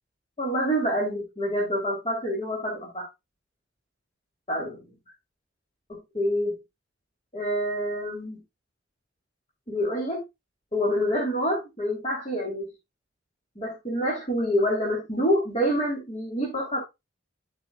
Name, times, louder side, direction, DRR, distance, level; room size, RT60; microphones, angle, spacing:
voice 1, 0.4-3.1 4.5-4.8 5.9-6.6 7.3-8.4 9.7-10.2 10.7-12.7 13.5-16.8, equal, 35° left, -3 dB, 3.1 m, -27 dB
12.0 x 6.0 x 2.3 m, 0.22 s
head